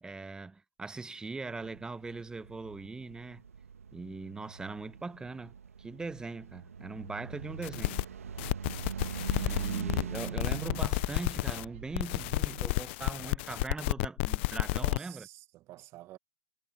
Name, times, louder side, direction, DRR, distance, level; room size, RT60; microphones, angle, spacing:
voice 1, 0.0-3.4 3.9-8.0 9.3-15.3, right 3 dB, 10° right, 1.2 m, -41 dB
sound 1, 1.4-10.9, right 6 dB, 85° right, 2.2 m, -41 dB
sound 2, 7.3-12.7, right 13 dB, 65° right, 3.7 m, -48 dB
sound 3, 7.6-8.0 8.4-11.6 11.9-15.0, left 23 dB, 50° left, 0.6 m, -31 dB
voice 2, 14.7-16.2, right 16 dB, 40° right, 1.8 m, -50 dB
hypercardioid pair, 105°, 8 cm